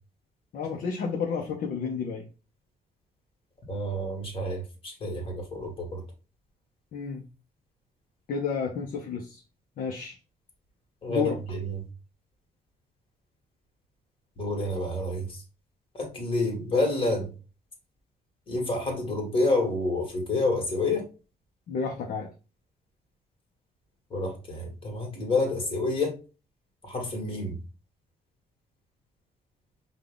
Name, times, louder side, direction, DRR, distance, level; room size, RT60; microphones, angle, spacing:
voice 1, 0.5-2.3 6.9-7.2 8.3-9.4 9.8-10.2 11.1-11.4 21.7-22.3, left 6 dB, 60° left, 0 dB, 0.8 m, -31 dB
voice 2, 3.7-6.0 11.0-11.9 14.4-15.4 15.9-17.3 18.5-21.0 24.1-26.2 26.8-27.6, left 2 dB, 35° left, 1 dB, 1.8 m, -28 dB
5.2 x 2.4 x 3.6 m, 0.32 s
cardioid pair, 140°, 16 cm